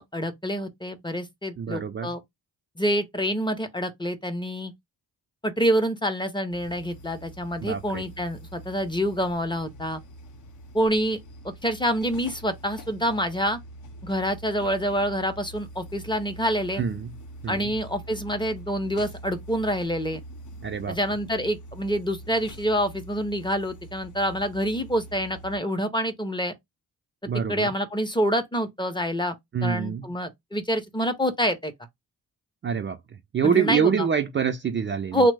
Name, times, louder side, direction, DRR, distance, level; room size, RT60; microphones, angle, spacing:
voice 1, 0.0-2.2 2.8-4.7 5.4-10.0 10.7-11.2 11.4-13.6 14.0-16.8 17.5-20.2 20.9-26.5 27.5-29.3 29.6-31.7 33.4-34.1 35.1-35.3, equal, 15° left, 0.6 m, -27 dB
voice 2, 1.6-2.1 7.6-8.0 16.8-17.1 17.4-17.7 20.6-21.0 27.3-27.7 29.5-30.1 32.6-33.0 33.3-35.3, right 7 dB, 35° right, 0.4 m, -26 dB
sound 1, 6.5-25.6, right 1 dB, 55° left, 0.7 m, -44 dB
2.9 x 2.0 x 3.2 m
cardioid pair, 85°, 36 cm